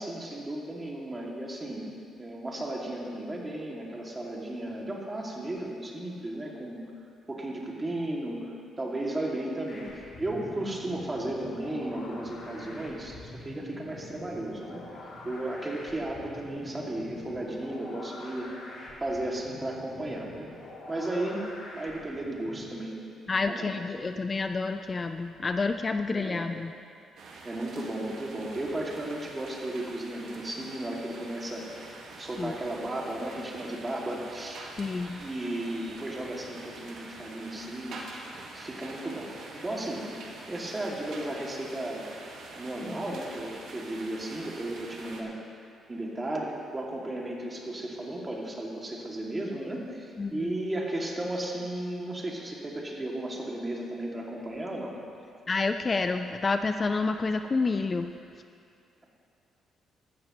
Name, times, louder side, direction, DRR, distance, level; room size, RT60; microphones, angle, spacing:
voice 1, 0.0-1.9 2.2-6.8 7.3-13.2 13.4-18.5 19.0-20.5 20.9-21.5 21.7-23.0 23.5-24.1 26.1-26.5 27.4-31.7 32.2-34.6 35.2-38.0 38.5-40.1 40.5-42.0 42.6-45.4 45.9-55.0, right 1 dB, 20° right, -2 dB, 2.3 m, -34 dB
sound 1, 9.6-22.8, left 2 dB, 65° left, 2.9 m, -45 dB
voice 2, 23.3-26.7 32.4-32.5 34.8-35.2 42.8-43.2 50.2-50.5 55.5-58.1, left 3 dB, 30° left, 8 dB, 0.4 m, -29 dB
sound 2, 27.2-45.2, right 3 dB, 70° right, 1.7 m, -45 dB
14.0 x 13.5 x 3.1 m, 2.5 s
cardioid pair, 90°, 0 cm